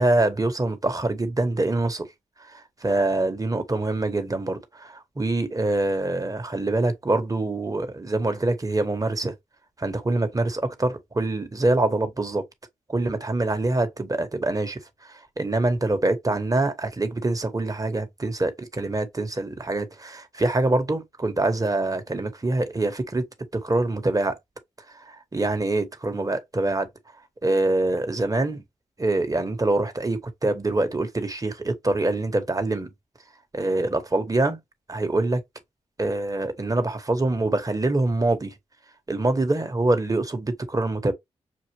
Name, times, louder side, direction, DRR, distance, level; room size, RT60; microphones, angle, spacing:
voice 1, 0.0-2.1 2.4-9.3 9.8-12.4 12.9-23.2 23.5-24.4 24.9-26.9 27.4-28.6 29.0-32.9 33.5-34.6 34.9-35.4 36.0-38.6 39.1-41.1, right 2 dB, 25° right, 1.4 m, -25 dB
6.4 x 2.5 x 3.1 m
supercardioid pair, 45°, 13 cm